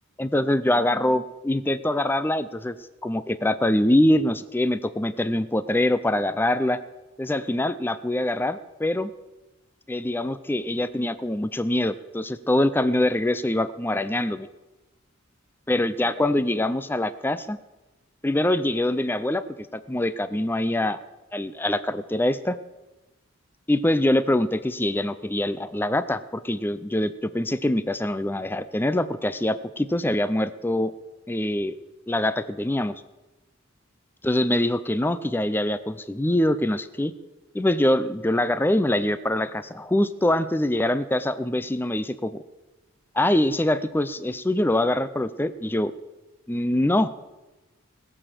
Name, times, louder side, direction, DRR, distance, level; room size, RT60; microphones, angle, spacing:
voice 1, 0.2-2.8 3.0-6.8 7.2-9.1 9.9-14.5 15.7-17.6 18.2-21.0 21.3-22.6 23.7-30.9 31.3-31.8 32.1-33.0 34.2-37.1 37.5-42.4 43.1-45.9 46.5-47.1, left 1 dB, 10° left, 13 dB, 0.4 m, -24 dB
20.5 x 6.9 x 7.6 m, 1.1 s
head